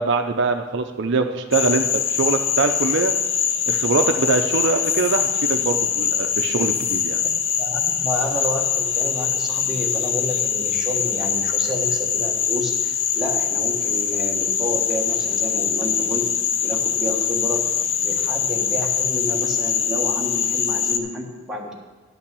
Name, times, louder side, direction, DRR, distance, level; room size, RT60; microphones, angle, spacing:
voice 1, 0.0-3.1 3.7-7.2, right 4 dB, 60° right, 6 dB, 0.6 m, -23 dB
Frog, 1.5-21.0, left 8 dB, 65° left, 0.7 m, -23 dB
voice 2, 7.6-16.3 16.6-17.7 18.0-21.7, equal, ahead, -3 dB, 1.4 m, -30 dB
11.0 x 5.8 x 6.8 m, 1.4 s
head